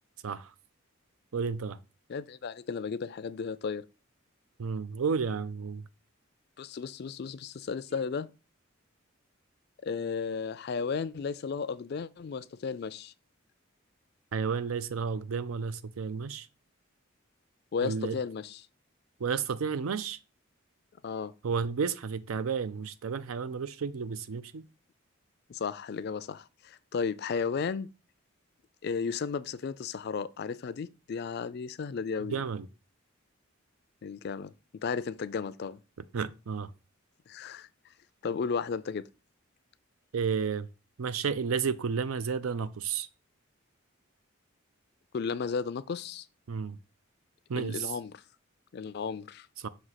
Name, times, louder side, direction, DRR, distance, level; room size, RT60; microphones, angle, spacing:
voice 1, 1.3-1.8 4.6-5.8 14.3-16.5 17.8-18.2 19.2-20.2 21.4-24.6 32.3-32.7 36.1-36.7 40.1-40.7 41.0-43.1 46.5-46.8 47.5-47.9 49.6-49.7, right 6 dB, 90° right, 0.5 m, -32 dB
voice 2, 2.1-3.8 6.6-8.3 9.8-13.1 17.7-18.6 21.0-21.3 25.5-27.9 28.8-32.4 34.0-34.5 34.8-35.8 37.3-37.7 38.2-39.1 45.1-46.3 47.6-48.2 48.7-49.5, left 5 dB, 50° left, 0.4 m, -34 dB
6.2 x 2.8 x 5.7 m
head